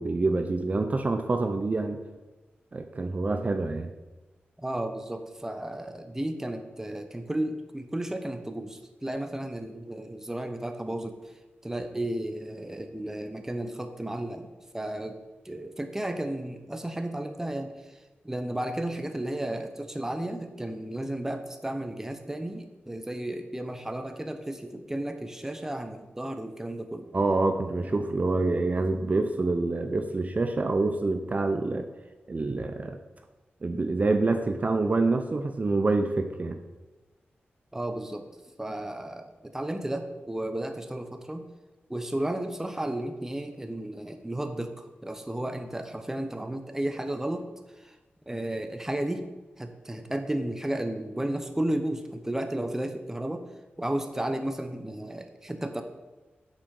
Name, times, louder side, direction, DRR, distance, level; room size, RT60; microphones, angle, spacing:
voice 1, 0.0-2.0 2.7-3.9 27.1-31.9 32.3-33.0 33.6-36.6, right 3 dB, 40° right, 6 dB, 0.7 m, -26 dB
voice 2, 4.6-11.3 11.6-14.5 14.7-15.2 15.4-27.1 37.7-38.3 38.6-41.4 41.9-47.5 47.7-48.0 48.3-49.3 49.6-53.5 53.8-55.8, right 1 dB, 10° right, 7 dB, 0.9 m, -33 dB
8.1 x 6.5 x 6.5 m, 1.2 s
wide cardioid pair, 95°, 4 cm